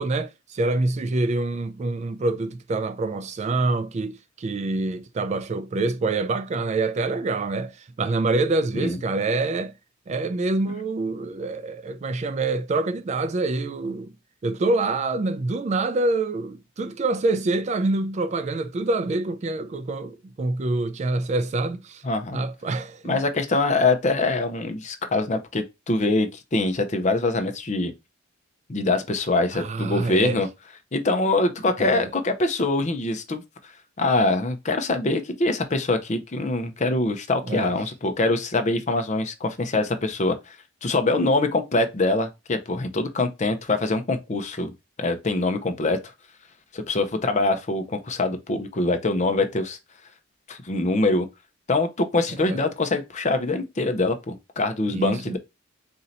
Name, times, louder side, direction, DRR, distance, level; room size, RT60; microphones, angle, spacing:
voice 1, 0.0-9.7 10.1-14.1 14.4-22.0 22.3-23.2 29.5-30.4 31.8-32.1 37.5-37.7 52.4-52.6 54.9-55.4, right 2 dB, 35° right, 0.3 m, -26 dB
voice 2, 22.0-22.4 23.1-27.9 28.7-30.5 30.9-33.4 34.0-40.6 40.8-44.7 45.0-46.0 46.7-49.8 50.5-51.3 51.7-55.4, left 2 dB, 35° left, 0.7 m, -24 dB
4.2 x 2.8 x 3.9 m
head